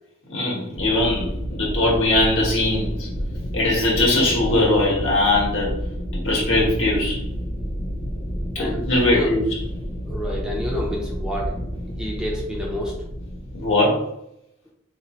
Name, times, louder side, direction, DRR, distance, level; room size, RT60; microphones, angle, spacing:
voice 1, 0.3-3.1 3.5-5.7 6.2-7.2 8.5-9.4 13.5-14.1, left 2 dB, 70° left, -4 dB, 1.4 m, -20 dB
sound 1, 0.8-13.7, equal, 40° left, 0.8 m, -30 dB
voice 2, 10.1-11.5 12.0-12.9, left 1 dB, 5° right, -4 dB, 0.6 m, -28 dB
4.0 x 2.9 x 3.0 m, 0.77 s
head